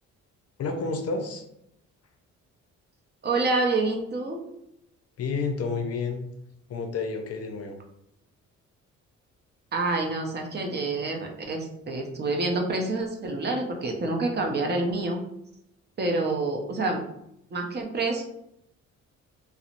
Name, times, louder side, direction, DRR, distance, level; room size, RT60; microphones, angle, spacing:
voice 1, 0.6-1.4 5.2-6.2 6.7-7.8, left 4 dB, 55° left, 4 dB, 0.5 m, -30 dB
voice 2, 3.2-4.4 9.7-15.2 16.0-17.0 17.5-18.2, right 2 dB, 35° right, 1 dB, 0.6 m, -27 dB
2.8 x 2.0 x 2.5 m, 0.78 s
cardioid pair, 90°, 30 cm